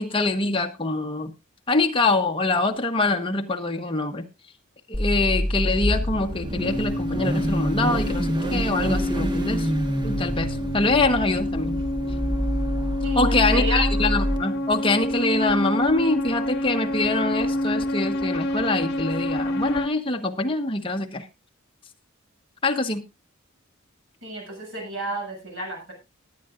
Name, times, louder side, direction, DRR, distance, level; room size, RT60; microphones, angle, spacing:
voice 1, 0.0-1.3 1.7-4.3 4.9-9.7 10.0-11.8 13.2-21.2 22.6-23.0, left 3 dB, 25° left, 4 dB, 1.2 m, -24 dB
Car / Idling / Accelerating revving vroom, 4.9-14.4, equal, 25° right, 1.3 m, -27 dB
sound 1, 6.6-19.9, left 1 dB, 55° left, 1.4 m, -28 dB
voice 2, 13.0-13.9 24.2-25.9, right 1 dB, 75° right, 1 dB, 7.2 m, -31 dB
19.5 x 9.9 x 2.5 m, 0.25 s
head